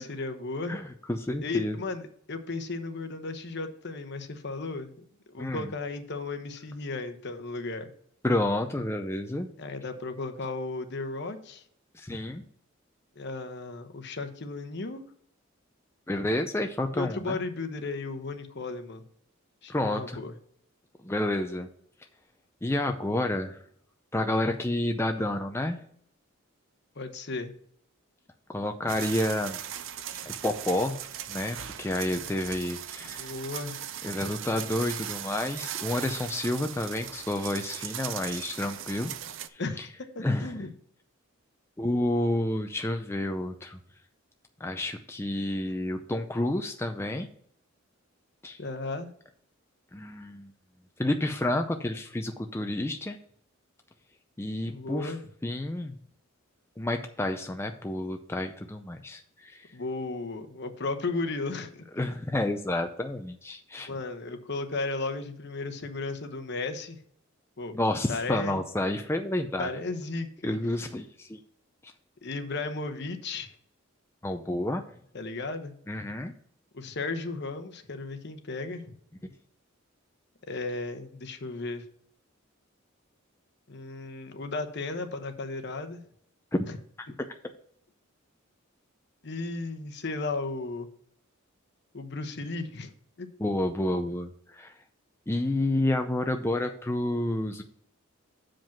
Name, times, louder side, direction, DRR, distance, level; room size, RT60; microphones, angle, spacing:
voice 1, 0.0-0.8 1.4-4.9 5.3-7.9 9.6-11.6 13.2-15.0 16.9-19.0 19.6-20.3 27.0-27.5 33.0-33.8 39.6-40.7 48.6-49.1 54.7-55.2 59.7-62.0 63.9-67.0 67.6-67.8 68.1-68.6 69.6-70.6 72.2-73.5 75.1-75.7 76.7-78.8 80.5-81.8 83.7-86.0 86.7-86.8 89.2-90.9 91.9-92.9 93.2-93.3, left 3 dB, 55° left, 8 dB, 1.0 m, -35 dB
voice 2, 0.7-1.8 5.4-5.7 8.2-9.5 11.9-12.4 16.1-17.4 19.7-20.2 21.0-21.7 22.6-23.6 24.1-25.8 28.5-29.6 30.3-31.0 31.3-33.3 34.0-39.1 39.8-39.9 40.2-40.7 41.8-43.8 44.6-47.3 48.4-48.6 49.9-50.5 51.0-53.2 54.4-55.1 55.4-55.9 56.8-59.7 62.0-63.9 67.7-69.7 70.4-71.4 74.2-74.8 75.9-76.3 86.5-86.7 87.0-87.1 93.4-94.7 95.3-97.6, left 1 dB, 10° left, 5 dB, 0.5 m, -30 dB
sound 1, 28.9-39.5, right 10 dB, 65° right, 0.6 m, -38 dB
7.5 x 5.1 x 5.8 m, 0.64 s
head